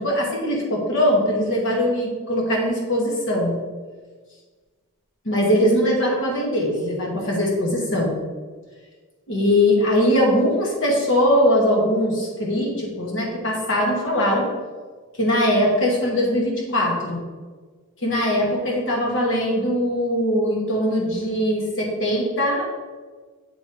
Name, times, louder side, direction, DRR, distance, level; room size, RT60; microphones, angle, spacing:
voice 1, 0.0-3.6 5.2-8.2 9.3-14.5 15.2-17.2 18.0-22.7, equal, 60° left, -2 dB, 1.6 m, -21 dB
7.8 x 3.2 x 4.7 m, 1.4 s
head